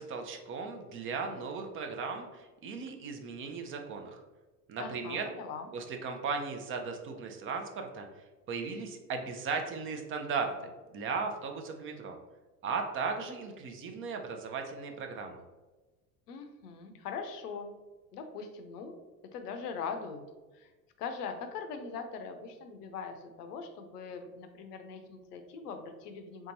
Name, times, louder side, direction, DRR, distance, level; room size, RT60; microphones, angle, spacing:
voice 1, 0.0-4.2 4.7-5.3 5.7-8.1 8.5-12.2 12.6-15.4, right 5 dB, 30° right, 4 dB, 0.4 m, -37 dB
voice 2, 4.8-5.7 16.3-17.7 18.1-18.9 19.3-20.2 20.5-20.7 21.0-26.5, left 5 dB, 80° left, 7 dB, 0.6 m, -41 dB
3.4 x 2.8 x 2.7 m, 1.2 s
hypercardioid pair, 75°, 46 cm